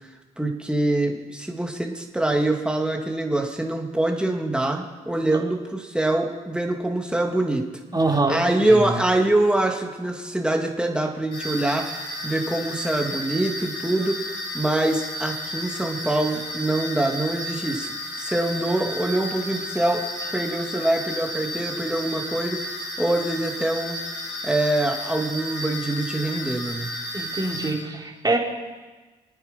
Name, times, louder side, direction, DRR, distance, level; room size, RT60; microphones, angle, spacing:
voice 1, 0.4-7.6 8.3-20.0 20.3-24.0 24.4-26.9, right 1 dB, 5° right, 2 dB, 2.7 m, -24 dB
voice 2, 7.9-8.4 8.7-9.0 27.1-28.4, right 2 dB, 20° right, 0 dB, 3.7 m, -24 dB
sound 1, 11.3-27.7, left 1 dB, 85° left, 4.4 m, -33 dB
26.0 x 9.4 x 5.5 m, 1.3 s
hypercardioid pair, 45°, 19 cm